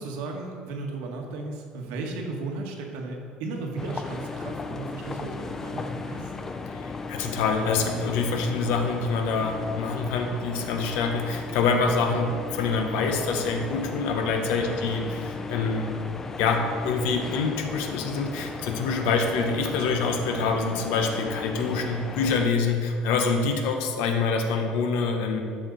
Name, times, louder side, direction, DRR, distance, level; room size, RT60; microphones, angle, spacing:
voice 1, 0.0-6.5 14.6-14.8, right 3 dB, 80° right, 1 dB, 1.6 m, -35 dB
sound 1, 3.8-22.5, left 4 dB, 15° left, 0.4 m, -36 dB
voice 2, 6.7-15.9 16.4-25.4, left 4 dB, 75° left, 4 dB, 1.0 m, -26 dB
11.5 x 6.6 x 4.1 m, 2.2 s
cardioid pair, 175°, 3 cm